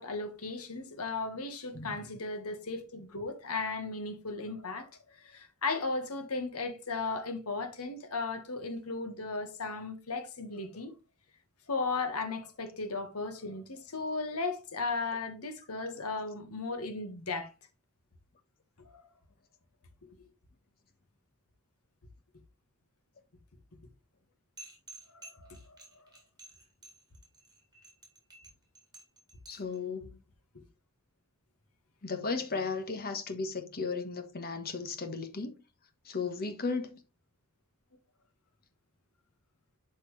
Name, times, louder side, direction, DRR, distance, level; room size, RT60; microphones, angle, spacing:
voice 1, 0.0-10.9 11.7-17.5 18.8-19.0 25.1-26.0 30.5-30.6, left 3 dB, 85° left, 1.7 m, -36 dB
voice 2, 1.7-2.1 29.5-30.2 32.0-35.6 36.0-37.0, left 4 dB, 45° left, 1.3 m, -35 dB
sound 1, 24.6-29.8, right 2 dB, 20° right, 4.2 m, -52 dB
12.0 x 4.4 x 3.3 m
head